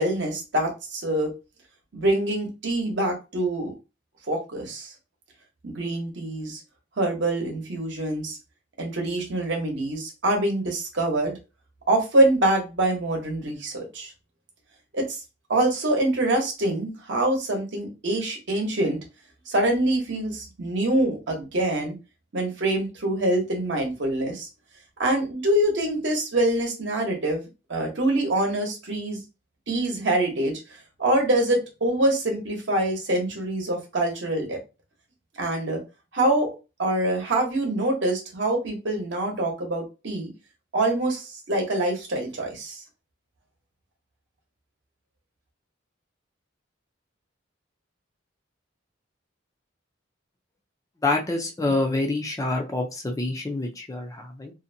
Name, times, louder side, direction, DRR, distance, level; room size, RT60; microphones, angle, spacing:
voice 1, 0.0-1.3 1.9-3.7 4.3-4.9 5.6-6.6 7.0-8.4 8.8-11.3 11.9-14.1 14.9-15.2 15.5-19.0 19.5-21.9 22.3-24.5 25.0-27.4 27.7-29.2 29.7-30.6 31.0-34.6 35.4-35.8 36.1-36.5 36.8-40.3 40.7-42.8, right 1 dB, 65° right, 1 dB, 0.9 m, -25 dB
voice 2, 51.0-54.5, left 2 dB, 15° left, 2 dB, 0.4 m, -27 dB
2.6 x 2.1 x 2.6 m, 0.28 s
head